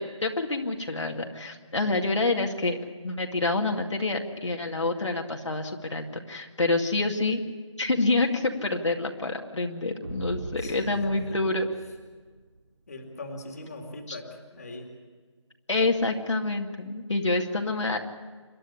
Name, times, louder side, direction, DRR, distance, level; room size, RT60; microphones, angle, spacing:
voice 1, 0.0-2.8 3.0-7.4 7.8-11.7 14.1-14.2 15.7-18.0, left 2 dB, 70° left, 2 dB, 2.3 m, -27 dB
sound 1, 10.0-12.6, right 2 dB, 40° right, 2.8 m, -40 dB
voice 2, 10.6-11.2 12.9-14.3 14.5-14.9, left 2 dB, 30° left, 3 dB, 2.4 m, -40 dB
27.0 x 12.0 x 10.0 m, 1.4 s
figure-of-eight pair, 175°, 16 cm